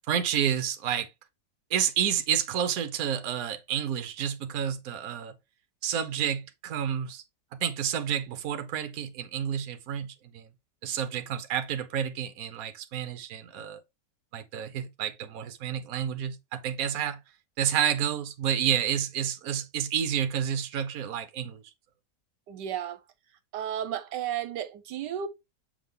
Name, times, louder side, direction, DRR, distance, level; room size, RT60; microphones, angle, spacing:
voice 1, 0.1-1.1 1.7-5.3 5.8-7.2 7.5-10.5 10.8-13.8 14.3-17.2 17.6-21.6, right 9 dB, 60° right, 1.2 m, -30 dB
voice 2, 22.5-23.0 23.5-25.3, right 9 dB, 85° right, 1.3 m, -33 dB
7.1 x 3.8 x 3.6 m
omnidirectional pair, 1.8 m